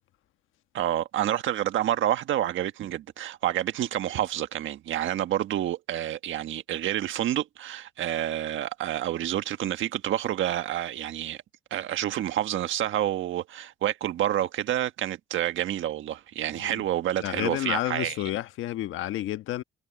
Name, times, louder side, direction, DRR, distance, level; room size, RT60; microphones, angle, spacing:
voice 1, 0.7-11.4 11.7-18.2, right 12 dB, 75° right, 1.5 m, -28 dB
voice 2, 17.2-19.6, left 14 dB, 85° left, 1.3 m, -30 dB
cardioid pair, 90°, 20 cm